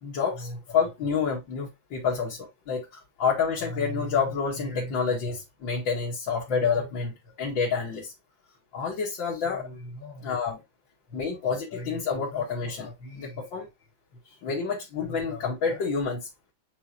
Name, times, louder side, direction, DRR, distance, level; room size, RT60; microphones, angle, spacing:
voice 1, 0.0-2.9 3.2-8.1 8.7-10.6 11.1-13.7 14.4-16.3, left 5 dB, 75° left, 2.5 m, -28 dB
5.9 x 5.7 x 2.8 m
omnidirectional pair, 2.1 m